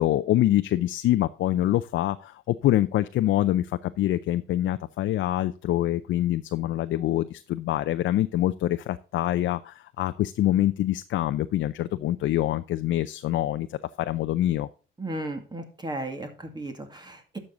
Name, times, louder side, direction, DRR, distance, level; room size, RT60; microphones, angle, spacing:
voice 1, 0.0-14.7, left 13 dB, 70° left, 11 dB, 0.5 m, -25 dB
voice 2, 15.0-17.4, right 1 dB, 20° right, 6 dB, 2.3 m, -35 dB
11.5 x 6.5 x 3.8 m, 0.37 s
cardioid pair, 90°, 20 cm